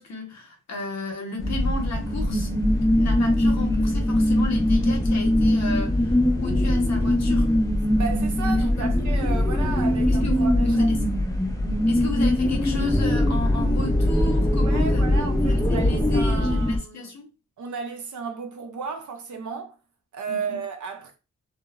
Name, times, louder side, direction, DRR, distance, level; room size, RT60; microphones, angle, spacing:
voice 1, 0.0-2.5 3.0-6.2 6.4-7.5 8.5-9.0 10.1-11.0 11.9-17.3 20.3-20.6, left 2 dB, 65° left, 0.8 m, -34 dB
sound 1, 1.4-16.8, left 1 dB, 10° left, 0.4 m, -21 dB
voice 2, 8.0-10.9 14.6-17.1 17.6-19.8 20.1-21.2, right 5 dB, 80° right, 0.5 m, -34 dB
2.9 x 2.0 x 2.3 m
wide cardioid pair, 95°, 30 cm